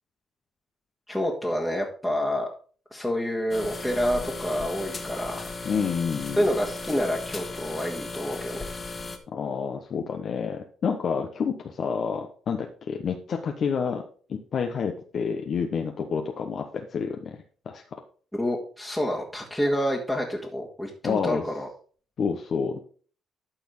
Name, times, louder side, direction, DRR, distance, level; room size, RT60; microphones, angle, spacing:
voice 1, 1.1-2.5 2.9-5.4 6.4-8.7 18.3-21.7, equal, 5° left, -3 dB, 1.9 m, -28 dB
sound 1, 3.5-9.2, left 3 dB, 30° left, 1.7 m, -36 dB
voice 2, 5.6-6.4 9.3-14.0 14.3-18.0 21.0-21.5 22.2-22.8, left 6 dB, 55° left, 4 dB, 1.0 m, -29 dB
12.0 x 4.3 x 5.3 m, 0.43 s
cardioid pair, 90°, 0 cm